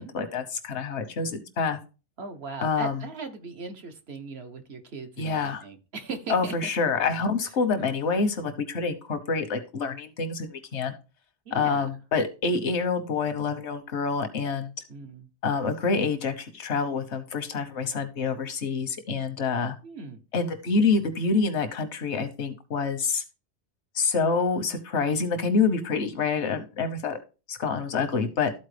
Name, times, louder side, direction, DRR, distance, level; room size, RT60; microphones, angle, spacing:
voice 1, 0.0-1.8 2.6-3.0 5.2-5.6 6.3-10.9 11.5-14.7 15.4-19.8 20.3-23.2 23.9-27.2 27.5-28.5, left 4 dB, 80° left, 9 dB, 1.3 m, -27 dB
voice 2, 2.2-6.5 11.5-11.9 14.9-15.3 19.8-20.2, right 4 dB, 65° right, 6 dB, 1.2 m, -38 dB
13.0 x 4.3 x 3.3 m, 0.32 s
omnidirectional pair, 1.1 m